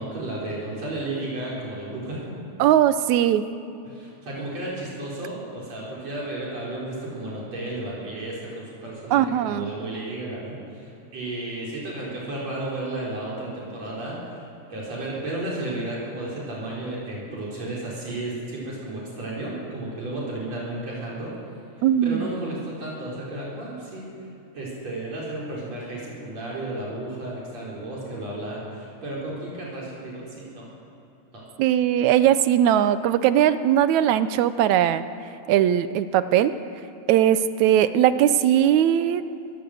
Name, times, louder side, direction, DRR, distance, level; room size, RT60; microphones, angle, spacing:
voice 1, 0.0-2.4 3.9-14.4 14.7-21.3 22.0-24.1 24.5-30.7 31.3-31.4, right 2 dB, 60° right, -5 dB, 5.6 m, -33 dB
voice 2, 2.6-3.4 9.1-9.7 21.8-22.3 31.6-35.0 35.5-36.5 37.1-39.2, right 11 dB, 85° right, 13 dB, 2.1 m, -19 dB
22.5 x 14.5 x 7.9 m, 2.8 s
omnidirectional pair, 3.3 m